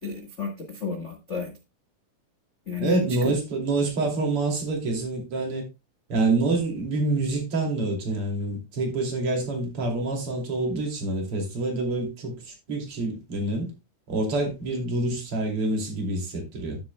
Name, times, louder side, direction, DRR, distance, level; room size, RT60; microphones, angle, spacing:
voice 1, 0.0-1.5 2.7-3.3, left 4 dB, 80° left, 0.6 m, -32 dB
voice 2, 2.8-5.6 6.1-13.7 14.1-16.8, right 2 dB, 40° right, 3.4 m, -27 dB
13.5 x 7.5 x 2.2 m
omnidirectional pair, 3.9 m